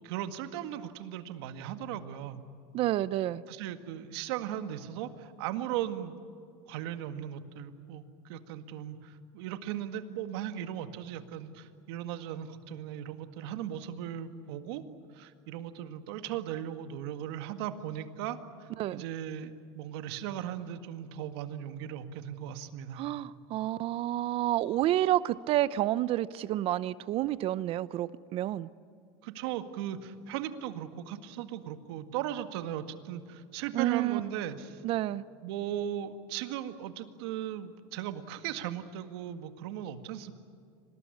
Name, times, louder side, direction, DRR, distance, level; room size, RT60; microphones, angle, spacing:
voice 1, 0.0-2.4 3.5-6.2 6.7-14.8 15.1-23.1 29.2-34.8 35.4-40.3, right 10 dB, 70° right, 9 dB, 1.9 m, -37 dB
voice 2, 2.7-3.4 18.8-19.0 23.0-28.7 33.7-34.2 34.8-35.2, right 14 dB, 45° right, 17 dB, 0.7 m, -29 dB
25.5 x 19.5 x 9.8 m, 2.4 s
supercardioid pair, 125°, 14 cm